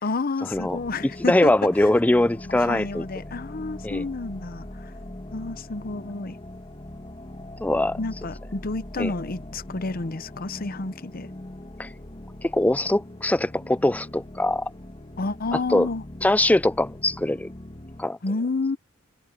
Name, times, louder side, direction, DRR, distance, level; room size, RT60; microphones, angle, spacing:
voice 1, 0.0-1.5 1.8-1.9 2.5-4.9 5.3-6.4 8.0-11.3 15.2-16.0 18.2-18.8, left 3 dB, 45° left, 0.8 m, -30 dB
sound 1, 0.5-18.1, left 1 dB, 25° left, 1.4 m, -41 dB
voice 2, 1.3-3.1 3.8-4.0 7.6-8.0 9.0-9.1 11.8-11.9 12.4-14.7 15.7-15.9 16.2-17.5 18.0-18.2, left 1 dB, 5° left, 0.3 m, -22 dB
head